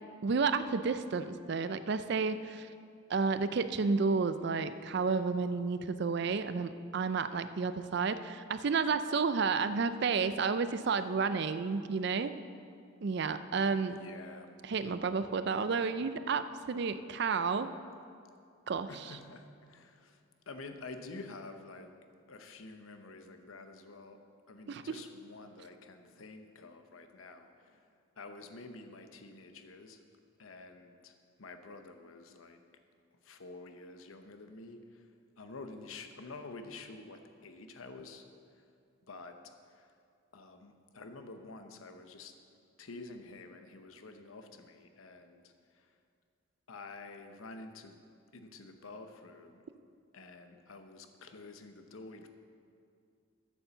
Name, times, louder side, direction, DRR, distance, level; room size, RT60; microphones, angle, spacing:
voice 1, 0.2-2.7 3.1-12.3 13.0-14.0 14.6-17.7 18.7-19.2 24.7-24.8, right 5 dB, 55° right, 12 dB, 0.4 m, -31 dB
voice 2, 13.9-14.5 18.9-20.2 20.5-21.9 22.3-24.2 24.5-27.9 28.2-30.0 30.4-31.1 31.4-32.6 33.2-35.1 35.4-38.2 39.1-39.4 39.7-39.9 40.3-42.3 42.8-45.9 46.7-48.0 48.3-49.6 50.1-52.3, left 3 dB, 80° left, 7 dB, 0.8 m, -49 dB
9.2 x 7.0 x 6.9 m, 2.3 s
head